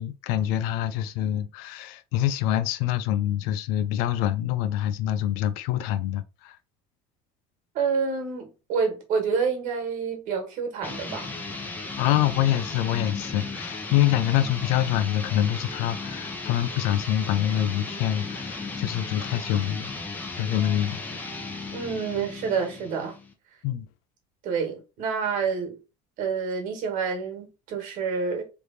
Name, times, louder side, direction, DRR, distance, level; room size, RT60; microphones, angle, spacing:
voice 1, 0.0-6.6 12.0-19.9 20.3-21.0 23.6-23.9, left 12 dB, 80° left, 0.5 m, -25 dB
voice 2, 7.7-11.3 21.7-23.2 24.4-25.8 26.2-28.4, right 5 dB, 60° right, 1.7 m, -28 dB
sound 1, 10.8-23.3, left 3 dB, 10° left, 0.8 m, -36 dB
3.3 x 3.2 x 4.1 m
cardioid pair, 150°, 15 cm